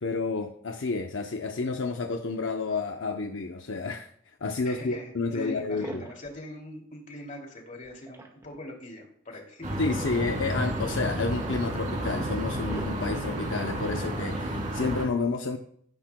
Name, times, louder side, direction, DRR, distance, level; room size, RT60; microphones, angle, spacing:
voice 1, 0.0-6.0 9.8-15.6, left 4 dB, 65° left, 4 dB, 0.7 m, -30 dB
voice 2, 4.6-9.8, left 1 dB, 35° left, 1 dB, 2.6 m, -42 dB
sound 1, 5.6-6.4 7.8-8.7 9.9-11.3 11.9-12.0 12.3-13.5, right 1 dB, 15° right, 1.6 m, -42 dB
sound 2, 9.6-15.1, right 1 dB, 35° right, 2.8 m, -31 dB
16.5 x 10.5 x 2.3 m, 0.64 s
head